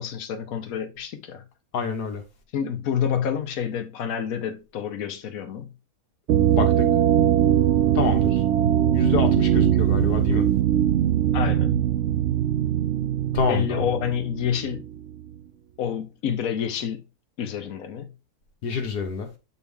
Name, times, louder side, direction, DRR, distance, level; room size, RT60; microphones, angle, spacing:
voice 1, 0.0-1.4 2.5-5.7 11.3-11.9 13.5-14.8 15.8-17.0 17.4-18.1, left 8 dB, 65° left, 1.3 m, -28 dB
voice 2, 1.7-2.2 6.5-6.9 8.0-8.3 8.9-10.5 13.3-13.8 18.6-19.3, left 5 dB, 90° left, 1.9 m, -27 dB
sound 1, 6.3-15.0, right 10 dB, 60° right, 0.7 m, -21 dB
8.1 x 4.4 x 3.5 m
omnidirectional pair, 1.7 m